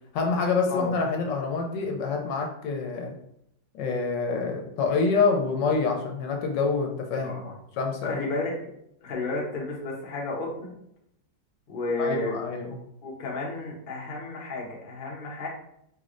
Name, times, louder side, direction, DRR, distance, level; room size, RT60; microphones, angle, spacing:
voice 1, 0.1-3.1 3.8-7.5 7.8-8.2 12.0-12.7, left 4 dB, 75° left, 2 dB, 1.3 m, -26 dB
voice 2, 7.2-7.5 8.0-8.6 9.0-10.7 11.7-12.4 13.0-15.5, left 2 dB, 40° left, -3 dB, 0.8 m, -32 dB
4.9 x 3.1 x 2.5 m, 0.76 s
omnidirectional pair, 2.0 m